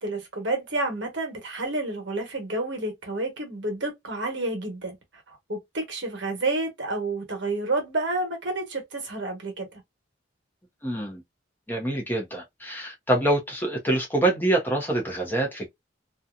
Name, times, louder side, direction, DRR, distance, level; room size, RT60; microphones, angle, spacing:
voice 1, 0.0-5.0 5.3-9.7, right 2 dB, 65° right, 1.2 m, -30 dB
voice 2, 10.8-11.2 11.7-15.7, right 1 dB, 10° left, 0.8 m, -25 dB
2.8 x 2.3 x 2.4 m
head